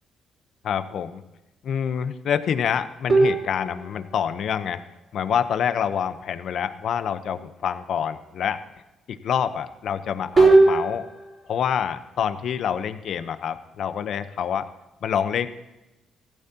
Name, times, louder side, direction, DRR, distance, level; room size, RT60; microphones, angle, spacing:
voice 1, 0.6-1.2 1.6-4.8 5.1-8.6 9.1-11.1 11.5-14.7 15.0-15.5, left 8 dB, 65° left, 11 dB, 0.9 m, -26 dB
sound 1, 3.1-4.3 10.4-11.4, right 3 dB, 35° right, 4.4 m, -19 dB
15.5 x 13.5 x 2.9 m, 0.98 s
cardioid pair, 90°, 0 cm